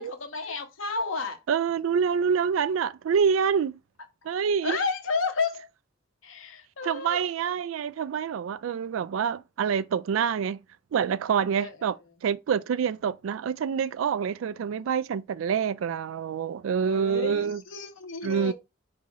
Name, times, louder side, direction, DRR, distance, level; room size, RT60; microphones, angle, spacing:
voice 1, 0.0-1.4 4.6-5.7 6.2-7.2 11.5-11.8 16.8-18.5, left 4 dB, 80° left, 1.0 m, -32 dB
voice 2, 1.5-3.8 4.2-4.8 6.8-10.6 10.9-17.6 18.2-18.5, right 7 dB, 85° right, 0.3 m, -26 dB
4.8 x 2.8 x 3.9 m
head